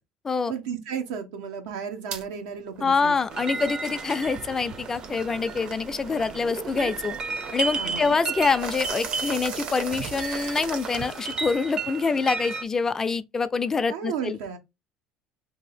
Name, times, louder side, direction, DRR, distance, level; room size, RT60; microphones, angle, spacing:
voice 1, 0.5-3.2 7.8-8.2 13.9-14.6, right 7 dB, 90° right, 0.8 m, -33 dB
sound 1, 2.1-2.2 2.7-11.5, right 5 dB, 60° right, 0.9 m, -39 dB
voice 2, 2.8-7.2 7.5-14.4, left 4 dB, 25° left, 0.3 m, -25 dB
sound 2, 3.3-12.6, right 5 dB, 40° right, 0.5 m, -34 dB
2.7 x 2.7 x 4.1 m
supercardioid pair, 105°, 2 cm